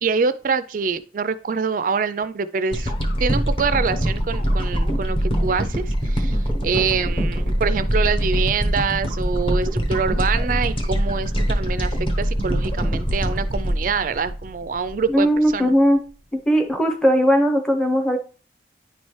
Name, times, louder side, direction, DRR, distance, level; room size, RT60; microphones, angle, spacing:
voice 1, 0.0-2.9 3.2-6.4 6.6-15.3 15.5-15.7, right 5 dB, 45° right, 13 dB, 0.3 m, -25 dB
sound 1, 2.7-15.0 15.5-15.6, equal, 30° left, 1.0 m, -23 dB
voice 2, 15.1-16.0 16.3-18.2, equal, 5° left, 5 dB, 0.6 m, -18 dB
9.8 x 4.2 x 3.1 m, 0.38 s
head